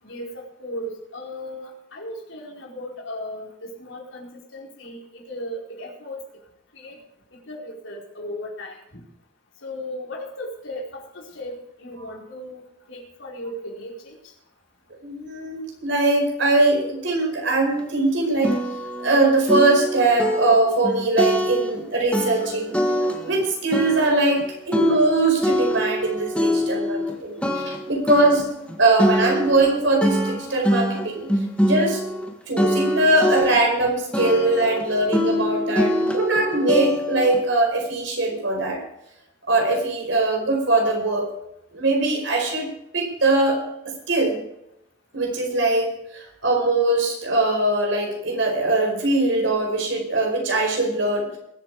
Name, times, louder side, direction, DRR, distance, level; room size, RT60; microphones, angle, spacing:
voice 1, 0.0-6.2 6.7-7.0 7.5-9.0 9.6-11.5 11.8-12.6 12.9-14.2, left 1 dB, 80° left, -2 dB, 4.6 m, -36 dB
voice 2, 15.0-18.5 19.0-22.8 23.2-28.5 28.8-31.3 31.6-32.0 32.5-38.8 39.5-41.3 41.7-42.7 42.9-43.6 44.1-44.4 45.1-51.4, right 2 dB, 70° right, 1 dB, 5.1 m, -21 dB
sound 1, 17.8-17.9 18.4-19.2 19.5-21.8 22.1-23.4 23.7-27.1 27.4-32.3 32.6-33.9 34.1-37.4, equal, 5° left, 1.6 m, -24 dB
21.5 x 8.3 x 4.8 m, 0.81 s
head